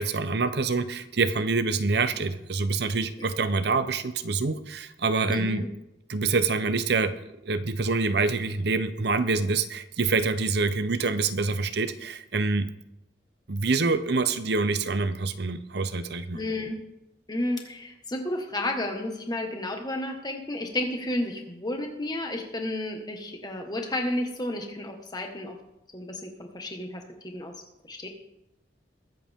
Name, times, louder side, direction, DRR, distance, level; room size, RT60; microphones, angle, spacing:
voice 1, 0.0-5.6 6.1-7.2 7.4-12.7 13.5-16.4, right 3 dB, 65° right, 11 dB, 0.8 m, -26 dB
voice 2, 5.3-5.7 16.3-16.8 17.3-25.6 25.9-27.5 27.8-28.1, left 1 dB, 25° left, 3 dB, 1.7 m, -32 dB
22.0 x 7.8 x 3.7 m, 0.87 s
head